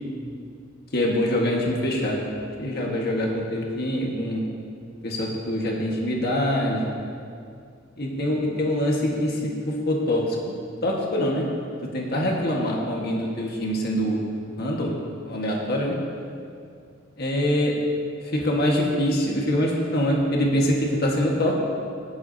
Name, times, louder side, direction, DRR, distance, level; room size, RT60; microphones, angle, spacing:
voice 1, 0.9-2.2 2.6-4.4 5.0-6.9 8.0-10.5 10.8-11.4 11.9-14.2 14.6-14.9 15.2-16.0 17.2-17.7 18.3-21.5, equal, 50° left, -2 dB, 1.6 m, -24 dB
18.0 x 10.5 x 2.8 m, 2.4 s
head